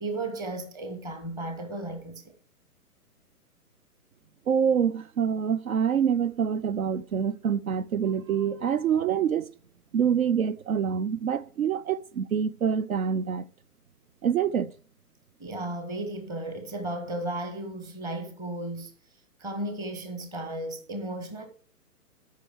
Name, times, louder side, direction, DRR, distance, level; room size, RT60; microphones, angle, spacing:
voice 1, 0.0-2.3 15.4-18.9 19.4-21.5, right 2 dB, 10° right, 0.8 m, -34 dB
voice 2, 4.5-9.5 9.9-13.4 14.2-14.7, right 7 dB, 65° right, 0.5 m, -26 dB
13.0 x 5.6 x 4.8 m
figure-of-eight pair, 125°, 47 cm